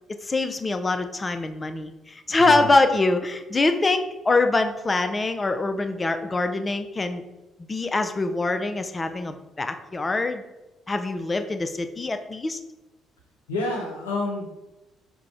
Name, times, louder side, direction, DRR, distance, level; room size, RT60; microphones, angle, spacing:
voice 1, 0.2-7.2 7.7-10.4 10.9-12.6, left 2 dB, 30° left, 8 dB, 0.4 m, -24 dB
voice 2, 2.4-2.7 13.5-14.7, left 2 dB, 85° left, 0 dB, 0.6 m, -29 dB
4.6 x 2.1 x 3.7 m, 1.0 s
hypercardioid pair, 45°, 0 cm